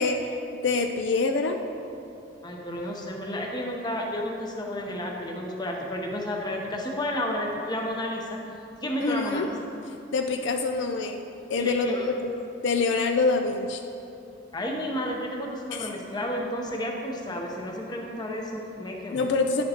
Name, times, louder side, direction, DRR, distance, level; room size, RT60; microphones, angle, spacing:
voice 1, 0.0-1.6 9.0-9.5 10.1-11.2 11.5-11.9 12.2-12.3 12.6-13.8 15.7-15.9 19.1-19.6, left 4 dB, 65° left, 5 dB, 0.4 m, -25 dB
voice 2, 2.4-8.4 8.8-9.5 11.6-12.1 14.5-19.2, left 1 dB, 20° left, 0 dB, 0.7 m, -31 dB
10.5 x 6.5 x 2.9 m, 2.7 s
head